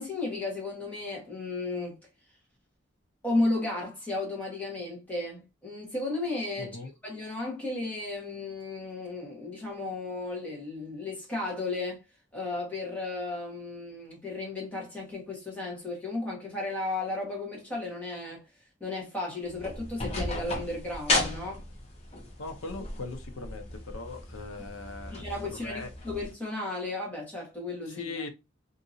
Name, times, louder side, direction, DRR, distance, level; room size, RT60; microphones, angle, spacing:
voice 1, 0.0-2.0 3.2-6.8 7.0-12.0 12.3-18.4 18.8-21.7 25.1-28.1, left 2 dB, 10° left, 1.2 m, -34 dB
voice 2, 6.6-6.9 22.4-25.9 27.9-28.3, left 3 dB, 85° left, 0.7 m, -40 dB
sound 1, 19.4-26.3, left 2 dB, 30° left, 0.9 m, -35 dB
2.8 x 2.6 x 2.6 m
head